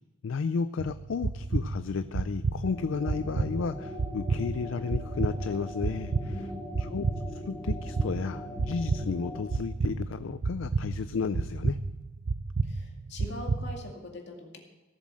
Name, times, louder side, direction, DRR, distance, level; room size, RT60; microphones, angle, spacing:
voice 1, 0.2-6.5 6.8-7.1 7.3-11.8, left 5 dB, 75° left, 12 dB, 0.4 m, -33 dB
sound 1, 0.8-13.9, right 3 dB, 60° right, 0.5 m, -32 dB
sound 2, 2.6-9.4, left 1 dB, 10° left, 2.6 m, -41 dB
voice 2, 6.3-6.7 12.6-14.6, left 1 dB, 60° left, 1 dB, 2.3 m, -42 dB
17.5 x 7.4 x 6.3 m, 1.2 s
head